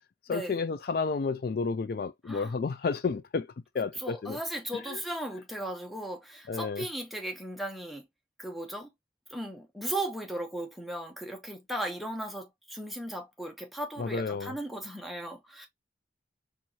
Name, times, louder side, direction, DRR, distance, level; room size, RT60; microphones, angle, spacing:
voice 1, 0.3-3.5 3.7-4.4 4.9-5.0 6.5-6.8 14.0-14.5, left 4 dB, 55° left, 0.3 m, -31 dB
voice 2, 2.2-2.6 4.0-8.1 8.4-8.9 9.3-15.7, right 1 dB, ahead, 0.8 m, -36 dB
4.5 x 2.6 x 2.7 m
head